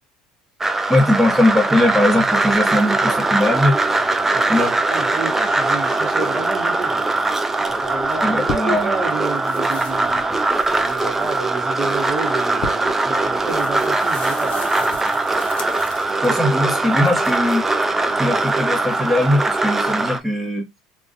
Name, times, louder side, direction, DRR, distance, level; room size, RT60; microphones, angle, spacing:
sound 1, 0.6-20.2, right 2 dB, 15° right, 0.4 m, -21 dB
voice 1, 0.9-3.8 4.5-4.7 8.2-8.9 16.2-17.6 18.2-20.6, left 1 dB, 5° left, 1.0 m, -19 dB
voice 2, 4.3-7.0 7.6-10.3 10.8-15.2, right 3 dB, 30° right, 0.9 m, -30 dB
sound 2, 7.6-8.9 9.2-16.5 16.9-17.6, left 4 dB, 50° left, 0.7 m, -36 dB
2.4 x 2.2 x 2.5 m
hypercardioid pair, 75°, 3 cm